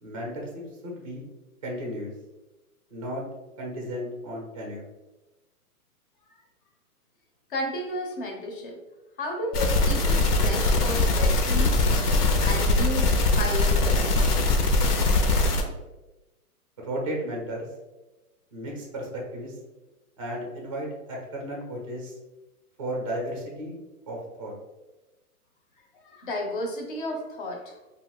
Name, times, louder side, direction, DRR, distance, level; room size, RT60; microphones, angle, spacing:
voice 1, 0.0-1.3 1.6-2.1 2.9-3.2 3.6-4.8 16.9-17.7 18.5-19.5 20.2-22.2 22.8-23.8 24.1-24.5, equal, 25° right, -1 dB, 0.4 m, -34 dB
voice 2, 7.5-8.8 9.2-11.8 12.4-14.3 25.9-27.9, left 1 dB, 35° left, 2 dB, 0.5 m, -33 dB
sound 1, 9.5-15.6, left 2 dB, 85° left, 0.7 m, -22 dB
2.5 x 2.4 x 3.4 m, 1.1 s
hypercardioid pair, 155°, 45 cm